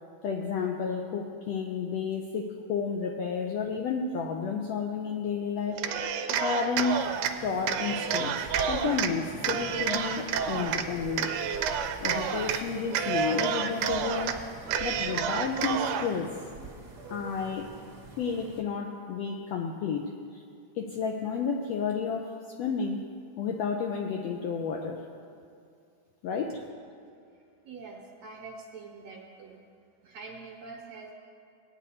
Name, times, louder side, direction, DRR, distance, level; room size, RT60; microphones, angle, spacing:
voice 1, 0.2-5.9 6.4-7.1 7.4-11.3 12.0-14.4 14.8-16.4 17.1-17.7 18.2-20.4 20.7-23.1 23.4-25.0 26.2-26.6, left 5 dB, 80° left, 1 dB, 1.5 m, -31 dB
Cheering, 5.7-7.3 7.7-9.1 9.4-10.8 11.2-12.6 12.9-14.3 14.7-16.1, right 7 dB, 85° right, 2.1 m, -29 dB
Piano, 6.3-16.7, right 3 dB, 55° left, 0.8 m, -53 dB
sound 1, 6.9-18.6, right 3 dB, 50° right, 1.2 m, -44 dB
voice 2, 27.6-29.6 30.0-31.1, right 4 dB, 65° right, -2 dB, 1.9 m, -45 dB
18.5 x 9.5 x 2.8 m, 2.4 s
omnidirectional pair, 3.6 m